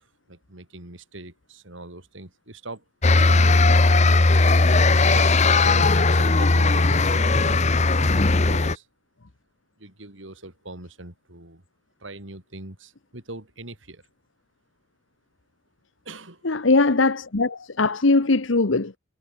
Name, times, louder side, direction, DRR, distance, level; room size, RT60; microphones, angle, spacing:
voice 1, 0.0-3.8 5.1-7.7 8.0-8.9 9.8-11.6 12.0-14.0 16.0-16.5, right 2 dB, 75° right, 4.3 m, -41 dB
sound 1, 3.0-8.8, left 3 dB, 35° left, 1.0 m, -18 dB
voice 2, 16.4-19.0, left 3 dB, 75° left, 1.1 m, -20 dB
head